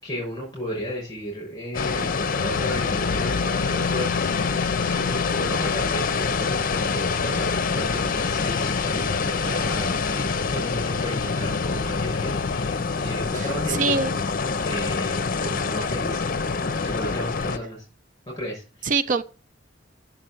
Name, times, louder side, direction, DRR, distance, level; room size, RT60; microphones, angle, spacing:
voice 1, 0.0-12.3 13.0-14.0 14.6-16.2 16.6-17.8 18.4-18.9, equal, 20° left, 6.8 m, -33 dB
sound 1, 1.7-17.6, left 4 dB, 50° left, 0.7 m, -26 dB
sound 2, 2.3-12.8, left 6 dB, 90° left, 0.4 m, -34 dB
voice 2, 13.4-14.1 18.8-19.2, right 4 dB, 45° right, 0.6 m, -24 dB
8.6 x 7.3 x 7.7 m
head